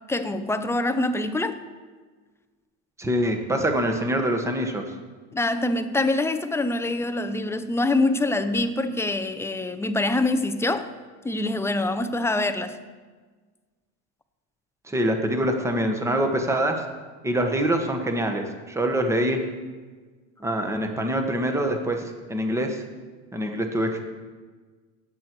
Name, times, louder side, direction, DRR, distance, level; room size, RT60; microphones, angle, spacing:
voice 1, 0.1-1.6 5.3-10.9 11.2-12.8, left 2 dB, 5° left, 10 dB, 0.5 m, -25 dB
voice 2, 3.0-4.8 14.9-16.8 17.2-19.4 20.4-22.8 23.3-24.0, right 1 dB, 10° right, 4 dB, 1.3 m, -25 dB
17.5 x 8.2 x 4.6 m, 1.4 s
supercardioid pair, 135°, 36 cm